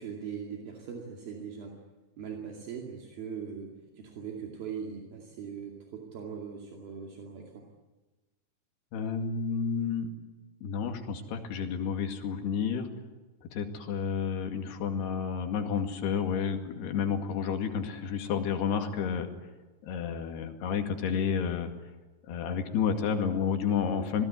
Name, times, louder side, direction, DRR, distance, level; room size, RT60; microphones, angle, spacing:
voice 1, 0.0-1.7 2.2-7.6, right 7 dB, 65° right, 0 dB, 4.2 m, -40 dB
voice 2, 8.9-10.1 10.6-12.9 13.5-19.3 19.8-21.7 22.3-24.2, left 6 dB, 80° left, 5 dB, 4.3 m, -30 dB
26.5 x 19.5 x 9.8 m, 1.2 s
omnidirectional pair, 4.7 m